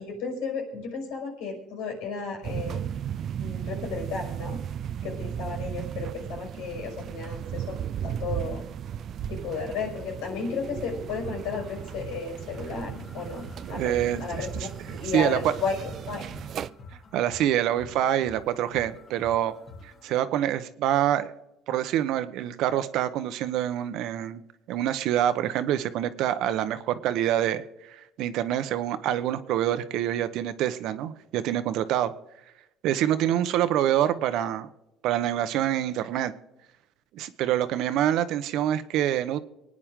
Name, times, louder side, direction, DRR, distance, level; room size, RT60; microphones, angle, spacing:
voice 1, 0.0-2.8 3.4-4.6 5.0-8.6 9.3-14.7 15.0-16.3, left 4 dB, 85° left, 2 dB, 5.7 m, -33 dB
sound 1, 2.4-16.7, right 9 dB, 50° right, 0.5 m, -36 dB
sound 2, 10.3-16.2, left 3 dB, 15° left, 1.1 m, -49 dB
sound 3, 11.1-20.1, left 3 dB, 40° left, 2.9 m, -48 dB
voice 2, 13.7-14.5 14.9-15.5 17.1-19.5 19.8-21.3 21.7-24.4 24.7-27.6 27.9-32.1 32.8-34.7 35.0-36.3 37.1-39.4, right 11 dB, 70° right, 12 dB, 1.1 m, -26 dB
24.5 x 9.7 x 3.7 m, 0.92 s
cardioid pair, 115°, 0 cm